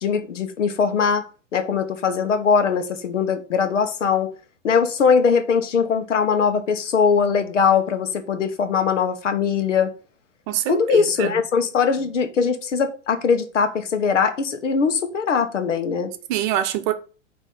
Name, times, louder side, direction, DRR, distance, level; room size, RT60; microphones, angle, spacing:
voice 1, 0.0-1.2 1.5-4.3 4.6-9.9 10.7-16.1, left 6 dB, 75° left, 1.1 m, -21 dB
voice 2, 10.5-11.4 16.3-16.9, right 11 dB, 40° right, 0.8 m, -24 dB
9.0 x 3.0 x 3.8 m
hypercardioid pair, 115°, 37 cm